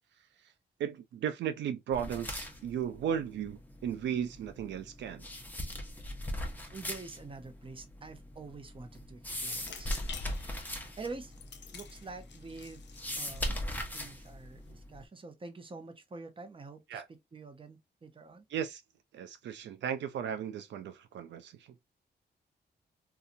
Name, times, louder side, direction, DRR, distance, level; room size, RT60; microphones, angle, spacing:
voice 1, 0.8-5.3 16.9-17.1 18.5-18.8 19.1-21.7, right 9 dB, 90° right, 0.4 m, -35 dB
sound 1, 1.9-15.1, left 1 dB, 10° left, 0.8 m, -40 dB
voice 2, 6.7-10.0 10.8-11.3 11.7-12.8 13.2-18.5, right 3 dB, 30° right, 0.7 m, -47 dB
sound 2, 9.4-14.7, left 6 dB, 80° left, 0.6 m, -50 dB
2.7 x 2.3 x 2.6 m
cardioid pair, 75°, 18 cm